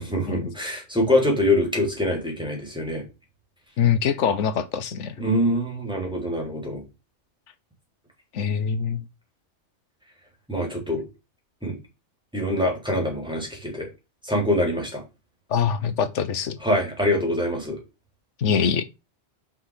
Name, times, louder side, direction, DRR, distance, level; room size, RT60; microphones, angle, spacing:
voice 1, 0.0-3.0 5.2-6.8 10.5-11.0 11.6-11.8 12.3-13.9 14.3-15.0 16.6-17.8, left 1 dB, 5° right, 3.7 m, -24 dB
voice 2, 3.8-5.1 8.3-9.0 15.5-16.6 18.4-18.8, left 7 dB, 85° left, 1.2 m, -23 dB
6.2 x 5.7 x 6.4 m
omnidirectional pair, 1.2 m